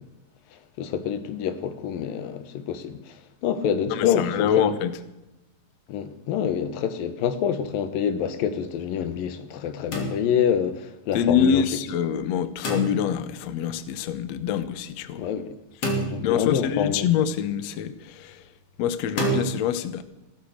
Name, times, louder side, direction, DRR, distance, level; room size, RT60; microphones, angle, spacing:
voice 1, 0.8-3.1 3.4-4.7 5.9-11.6 15.2-15.5 16.1-17.1, left 8 dB, 85° left, 2.9 m, -26 dB
voice 2, 3.9-5.0 11.1-15.3 16.2-18.4 18.8-20.0, left 8 dB, 65° left, 1.8 m, -25 dB
sound 1, 9.9-10.7 12.6-13.4 15.8-16.7 19.2-19.5, right 1 dB, 45° left, 3.9 m, -28 dB
16.0 x 13.5 x 6.5 m
omnidirectional pair, 4.0 m